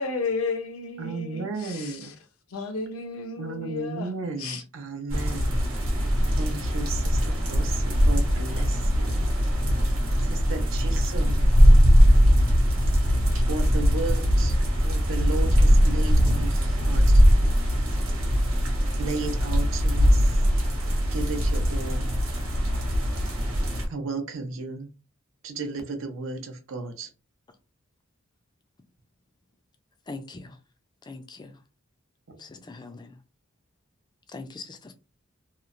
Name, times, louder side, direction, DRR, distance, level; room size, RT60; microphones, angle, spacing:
voice 1, 0.0-1.5 2.5-4.1 4.4-4.6, left 4 dB, 90° left, 0.6 m, -31 dB
voice 2, 1.0-2.1 3.4-5.6 6.4-9.2 10.2-11.5 13.5-17.2 19.0-20.4 21.1-22.1 23.9-24.9 25.4-27.1 32.3-32.4, right 3 dB, 70° right, 0.6 m, -34 dB
sound 1, 5.1-23.9, equal, 90° right, 1.0 m, -21 dB
voice 3, 30.1-30.6 31.0-31.6 32.4-33.2 34.3-34.9, left 3 dB, 20° left, 0.3 m, -41 dB
2.9 x 2.0 x 2.4 m
head